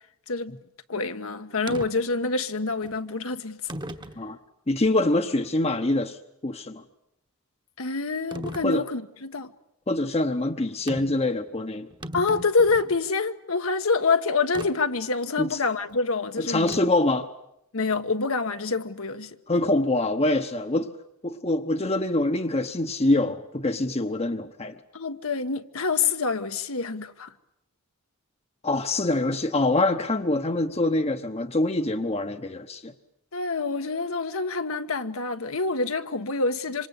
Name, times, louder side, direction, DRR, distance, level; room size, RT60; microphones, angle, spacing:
voice 1, 0.9-3.6 7.8-9.5 12.1-16.8 17.7-19.4 24.9-27.3 33.3-36.9, left 4 dB, 70° left, 1.3 m, -26 dB
sound 1, 1.7-1.9 2.8-2.9 3.7-4.2 4.8-4.9 8.3-8.7 10.9-11.2 11.6-11.7 11.9-13.0 14.5-14.7 16.7-17.1, right 1 dB, 20° right, 1.2 m, -37 dB
voice 2, 4.7-6.2 6.4-6.8 8.6-8.8 9.9-11.9 15.4-15.5 16.4-17.3 19.5-20.9 21.2-24.8 28.6-32.9, left 2 dB, 30° left, 1.0 m, -25 dB
26.5 x 25.5 x 8.2 m
head